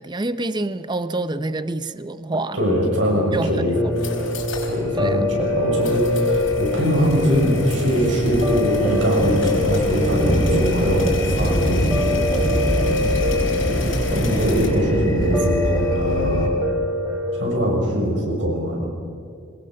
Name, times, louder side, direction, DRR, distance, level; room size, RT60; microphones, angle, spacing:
voice 1, 0.0-2.6 3.3-3.9 4.9-5.3, right 2 dB, 25° right, 13 dB, 0.7 m, -27 dB
voice 2, 2.5-3.8 4.6-11.9 13.7-16.5 17.3-18.9, equal, 70° right, -1 dB, 7.0 m, -22 dB
sound 1, 3.7-16.5, equal, 20° left, 3.8 m, -26 dB
sound 2, 3.8-4.8 5.1-5.2 5.8-14.7, left 2 dB, 85° left, 4.9 m, -33 dB
Piano, 3.8-17.5, left 1 dB, 10° right, 2.5 m, -24 dB
23.5 x 21.0 x 6.5 m, 2.4 s
head